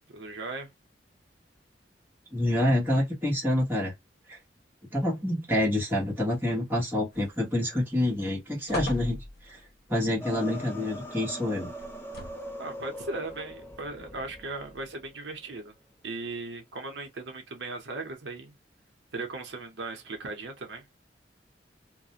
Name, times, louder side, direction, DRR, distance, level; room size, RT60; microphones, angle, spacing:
voice 1, 0.1-0.7 12.6-15.7 16.0-18.5 19.1-20.8, right 3 dB, 80° right, 0.7 m, -37 dB
voice 2, 2.3-3.9 4.3-4.4 4.9-9.2 9.4-9.6 9.9-11.7, left 1 dB, 10° right, 1.0 m, -27 dB
sound 1, 7.1-7.7 8.1-8.2 8.7-9.7 11.8-12.6 13.4-13.5, left 2 dB, 60° left, 0.8 m, -38 dB
sound 2, 10.2-15.1, equal, 15° left, 0.5 m, -41 dB
2.4 x 2.1 x 2.7 m
head